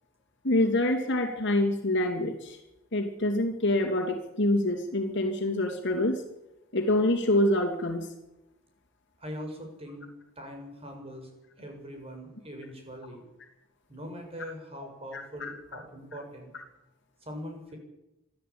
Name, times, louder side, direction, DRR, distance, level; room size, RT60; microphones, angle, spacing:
voice 1, 0.4-2.6 2.9-6.2 6.7-8.1 15.1-15.5, left 1 dB, 60° left, 3 dB, 2.8 m, -26 dB
voice 2, 9.2-10.1 10.4-11.3 11.6-13.2 13.9-16.5 17.2-17.8, equal, 30° right, 3 dB, 6.8 m, -42 dB
25.5 x 14.5 x 8.7 m, 0.93 s
head